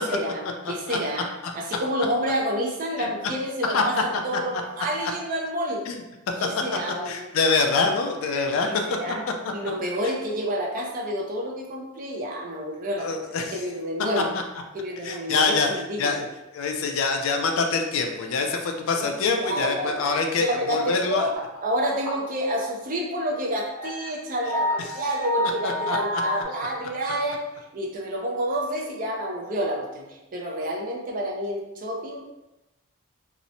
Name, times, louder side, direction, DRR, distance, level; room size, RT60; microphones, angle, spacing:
voice 1, 0.1-0.4 0.7-1.3 1.5-5.8 6.4-7.3 8.7-9.2 9.5-14.3 14.7-16.2 19.2-20.1 20.5-21.3 21.6-27.4 27.7-30.1 30.3-32.3, equal, 40° right, -1 dB, 0.5 m, -29 dB
voice 2, 0.6-1.0 3.0-3.1 3.6-3.8 4.5-4.6 5.9-6.0 7.0-8.7 13.0-13.6 14.2-14.4 15.0-15.7 16.0-16.3 16.5-21.3 25.6-26.2, left 4 dB, 65° left, 3 dB, 0.4 m, -25 dB
sound 1, 21.3-21.6 21.9-22.3 22.7-22.8 23.4-23.5 23.8-26.4, left 1 dB, 75° right, 0.9 m, -29 dB
2.8 x 2.1 x 2.6 m, 0.98 s
head